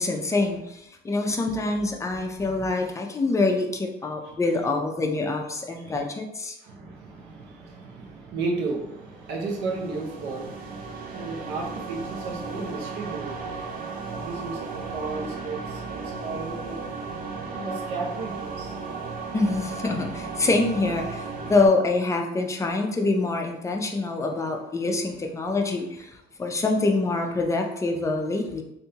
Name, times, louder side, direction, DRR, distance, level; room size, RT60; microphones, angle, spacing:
voice 1, 0.0-6.6 19.3-28.6, left 3 dB, 20° left, 2 dB, 0.5 m, -25 dB
voice 2, 6.6-10.7 11.1-13.4 14.1-16.8 17.5-18.7, right 3 dB, 85° right, 0 dB, 0.9 m, -34 dB
sound 1, 9.0-21.7, right 4 dB, 60° right, 0.7 m, -35 dB
3.4 x 2.6 x 2.8 m, 0.83 s
cardioid pair, 110°, 17 cm